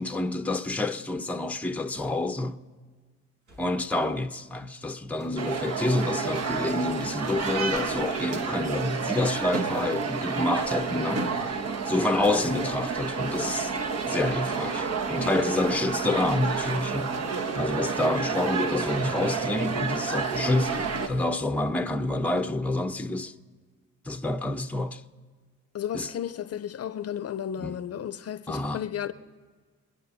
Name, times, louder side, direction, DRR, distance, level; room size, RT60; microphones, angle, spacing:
voice 1, 0.0-2.6 3.6-11.3 11.9-13.7 14.0-17.1 17.5-23.3 24.0-25.0 25.9-26.1 27.6-27.8 28.5-28.9, left 2 dB, 5° left, 0.7 m, -28 dB
sound 1, 1.9-2.2 3.4-3.7 5.1-5.5 7.0-7.4, right 1 dB, 80° right, 5.9 m, -51 dB
sound 2, 5.4-21.1, right 5 dB, 55° right, 1.3 m, -30 dB
voice 2, 25.7-29.1, left 9 dB, 55° left, 0.7 m, -33 dB
28.0 x 10.5 x 4.0 m
cardioid pair, 90°, 30 cm